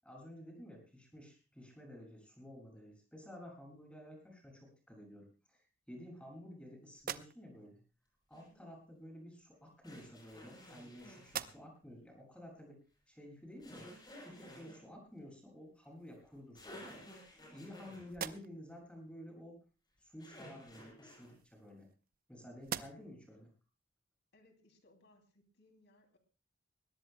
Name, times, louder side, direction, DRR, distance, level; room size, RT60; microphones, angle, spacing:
voice 1, 0.0-7.8 8.3-12.8 13.1-13.9 14.2-17.0 17.5-19.6 20.0-21.9 22.3-23.5, equal, 5° left, 1 dB, 6.9 m, -52 dB
sound 1, 6.9-7.8 8.9-9.1 10.0-10.9 11.2-11.9 12.4-12.5 15.2-15.3 15.7-16.4 17.0-17.7 18.1-18.8 20.8-22.2 22.6-23.3, right 8 dB, 50° right, 0.7 m, -46 dB
voice 2, 8.3-8.7 24.3-26.2, left 1 dB, 60° left, 4 dB, 2.8 m, -67 dB
sound 2, 8.3-8.5 9.8-11.5 13.6-14.8 16.2-16.3 16.6-18.1 20.2-21.3, left 1 dB, 25° left, 7.1 m, -53 dB
21.0 x 19.0 x 2.2 m, 0.32 s
head